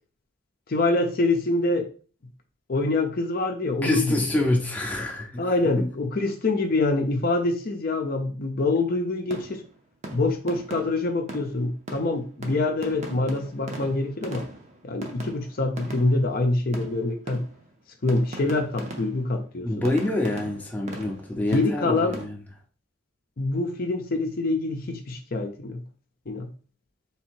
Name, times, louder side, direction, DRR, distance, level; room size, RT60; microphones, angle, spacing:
voice 1, 0.7-1.9 2.7-4.5 5.4-9.6 10.1-14.5 14.8-17.5 18.0-19.7 21.5-22.2 23.4-25.8 26.3-26.5, left 2 dB, 45° left, 0.6 m, -25 dB
voice 2, 3.8-5.5 5.8-5.9 19.6-22.4, left 1 dB, 10° left, 0.6 m, -26 dB
sound 1, 9.3-9.8 10.0-16.4 16.7-17.8 18.1-19.4 19.8-22.2, right 1 dB, 35° right, 0.7 m, -40 dB
3.5 x 2.8 x 4.4 m
head